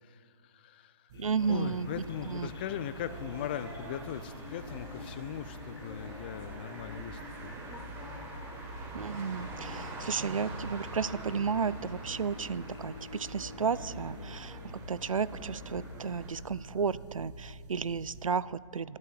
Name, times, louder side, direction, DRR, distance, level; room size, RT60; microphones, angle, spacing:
voice 1, 0.0-1.1 1.5-7.6, left 10 dB, 20° left, 14 dB, 0.4 m, -39 dB
sound 1, 1.1-17.1, left 7 dB, 50° left, 0.8 m, -52 dB
sound 2, 1.1-18.3, right 1 dB, 35° right, 1.5 m, -47 dB
voice 2, 1.2-1.9 2.3-2.5 8.9-14.6 14.9-19.0, right 6 dB, 85° right, 20 dB, 0.5 m, -33 dB
sound 3, 1.4-16.3, right 2 dB, 15° right, 1.6 m, -45 dB
12.5 x 11.5 x 7.8 m, 2.4 s
figure-of-eight pair, 145°, 17 cm